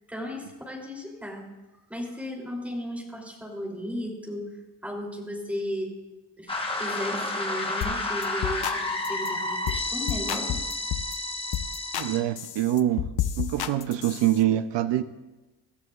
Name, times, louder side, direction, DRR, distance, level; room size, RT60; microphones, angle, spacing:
voice 1, 0.1-1.4 1.9-4.4 4.8-5.9 6.4-6.5 6.8-10.6, left 1 dB, 5° right, 2.9 m, -35 dB
sound 1, 6.5-12.2, left 2 dB, 15° left, 1.1 m, -30 dB
sound 2, 7.8-8.0 8.2-8.8 9.0-9.3 9.7-9.8 10.1-11.1 11.5-12.1 12.4-14.4, left 11 dB, 60° left, 0.7 m, -31 dB
voice 2, 11.9-13.1 13.4-15.0, right 12 dB, 85° right, 0.7 m, -25 dB
25.5 x 13.0 x 2.4 m
wide cardioid pair, 175°, 42 cm